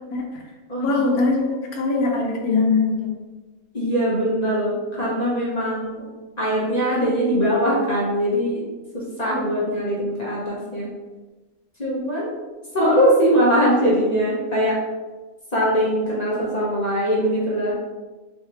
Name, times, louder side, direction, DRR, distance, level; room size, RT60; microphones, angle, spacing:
voice 1, 0.8-3.1, left 3 dB, 75° left, 0 dB, 1.2 m, -21 dB
voice 2, 3.7-6.0 6.4-8.6 8.9-10.9 11.8-12.3 12.7-14.7 15.5-17.7, equal, 35° left, -7 dB, 0.8 m, -21 dB
3.2 x 3.2 x 2.9 m, 1.2 s
omnidirectional pair, 1.6 m